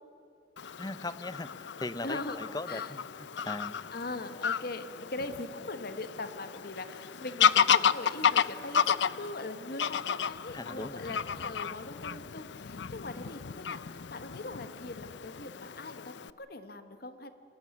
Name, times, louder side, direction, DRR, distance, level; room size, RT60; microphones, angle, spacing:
Fowl / Bird vocalization bird call bird song, 0.6-16.3, left 7 dB, 80° left, 0.6 m, -32 dB
voice 1, 0.8-3.8 10.5-11.4 13.2-13.3, left 2 dB, 20° left, 15 dB, 0.8 m, -40 dB
voice 2, 2.0-2.4 2.7-2.9 3.9-17.3, left 2 dB, 60° left, 10 dB, 1.3 m, -41 dB
24.5 x 18.0 x 9.5 m, 2.6 s
head